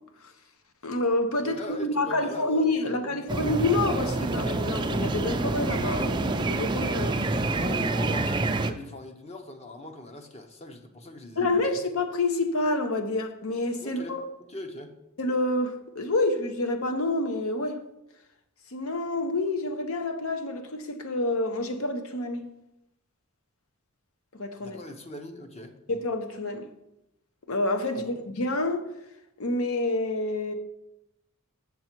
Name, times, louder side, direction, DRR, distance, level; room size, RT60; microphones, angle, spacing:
voice 1, 0.8-7.4 11.4-14.2 15.2-17.8 18.7-22.5 24.3-24.8 25.9-26.7 27.5-28.9 29.4-30.5, left 2 dB, 75° left, 0.9 m, -28 dB
voice 2, 1.4-3.2 7.5-11.7 13.8-15.0 24.6-25.7 28.0-28.1, left 1 dB, 30° left, 0.8 m, -40 dB
sound 1, 3.3-8.7, right 2 dB, 20° right, 0.3 m, -27 dB
7.1 x 6.9 x 4.5 m
head